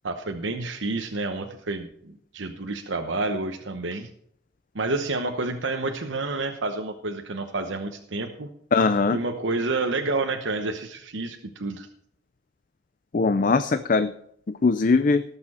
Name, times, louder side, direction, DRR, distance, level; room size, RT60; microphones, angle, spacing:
voice 1, 0.0-4.1 4.7-8.5 9.1-11.9, right 3 dB, 80° right, 5 dB, 1.0 m, -29 dB
voice 2, 8.7-9.2 13.1-14.1 14.5-15.2, left 4 dB, 45° left, 11 dB, 0.4 m, -21 dB
19.0 x 6.9 x 4.2 m, 0.67 s
head